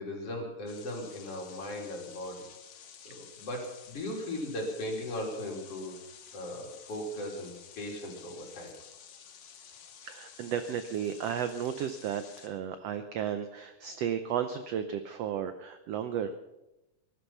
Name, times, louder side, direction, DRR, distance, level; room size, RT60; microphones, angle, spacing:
voice 1, 0.0-2.5 3.1-6.0 6.3-8.7, left 1 dB, 45° left, 0 dB, 4.0 m, -38 dB
sound 1, 0.7-12.5, left 8 dB, 70° left, 2.9 m, -52 dB
voice 2, 10.0-16.4, right 8 dB, 85° right, 9 dB, 1.4 m, -34 dB
19.5 x 11.5 x 5.8 m, 0.95 s
omnidirectional pair, 3.9 m